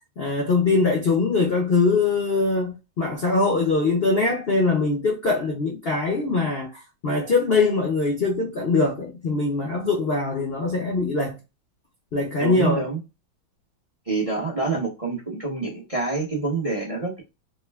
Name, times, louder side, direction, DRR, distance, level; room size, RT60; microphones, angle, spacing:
voice 1, 0.2-6.7 7.0-11.4 12.1-12.9, left 3 dB, 80° left, 0.5 m, -22 dB
voice 2, 12.4-13.0 14.1-17.2, right 3 dB, 35° right, 0.5 m, -27 dB
3.6 x 2.1 x 3.3 m
omnidirectional pair, 2.3 m